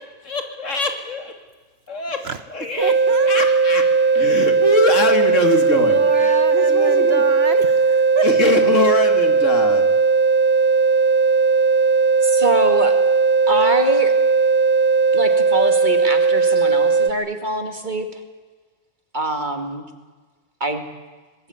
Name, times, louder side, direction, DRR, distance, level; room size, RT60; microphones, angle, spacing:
voice 1, 0.3-1.4 1.9-2.2 2.5-3.0 3.3-7.2 8.2-9.9, left 2 dB, 70° left, 6 dB, 3.0 m, -23 dB
voice 2, 2.2-3.3 5.5-8.3, right 5 dB, 55° right, 12 dB, 1.3 m, -28 dB
sound 1, 2.8-17.1, right 4 dB, 10° right, 0.7 m, -17 dB
voice 3, 12.2-13.0 13.5-14.1 15.1-18.2 19.1-19.8 20.6-20.8, right 1 dB, 35° right, 7 dB, 2.5 m, -24 dB
25.0 x 20.5 x 9.6 m, 1.4 s
omnidirectional pair, 1.4 m